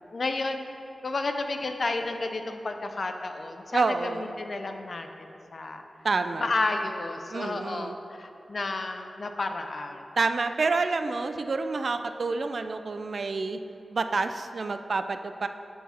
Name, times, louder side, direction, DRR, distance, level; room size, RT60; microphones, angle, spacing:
voice 1, 0.1-0.7 1.0-5.8 6.4-10.0, left 3 dB, 55° left, 6 dB, 0.5 m, -31 dB
voice 2, 3.7-4.4 6.0-6.5 7.3-8.0 10.2-13.6 13.9-15.5, right 3 dB, 60° right, 9 dB, 0.3 m, -28 dB
9.1 x 4.7 x 4.2 m, 3.0 s
wide cardioid pair, 75°, 0 cm